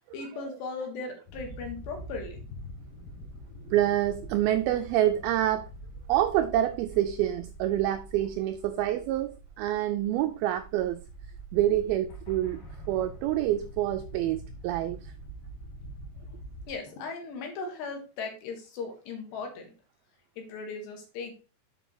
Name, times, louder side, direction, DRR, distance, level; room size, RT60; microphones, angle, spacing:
voice 1, 0.1-2.4 16.7-19.7 20.4-21.3, left 4 dB, 80° left, 4.0 m, -37 dB
sound 1, 1.3-16.7, right 1 dB, 65° left, 3.3 m, -45 dB
voice 2, 3.7-5.7 6.1-11.0 11.5-15.1, right 12 dB, 85° right, 2.1 m, -27 dB
7.7 x 5.2 x 4.7 m
omnidirectional pair, 4.9 m